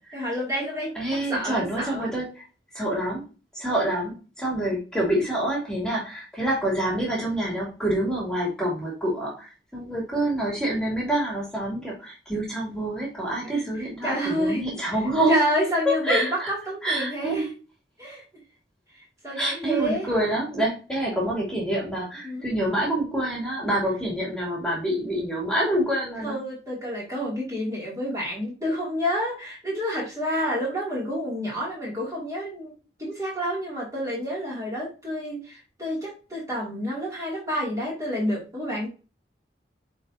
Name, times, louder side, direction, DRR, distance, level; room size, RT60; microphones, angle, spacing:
voice 1, 0.1-0.9 1.3-2.1 13.5-13.7 14.0-14.7 15.3-17.5 18.0-18.2 19.2-20.1 22.2-22.5 26.2-32.7 33.0-38.9, equal, 20° right, -5 dB, 2.5 m, -29 dB
voice 2, 0.9-2.4 2.7-3.2 3.5-15.4 15.9-16.5 16.8-17.4 19.4-26.4, right 1 dB, 5° left, -4 dB, 2.6 m, -27 dB
9.4 x 4.1 x 2.7 m, 0.33 s
head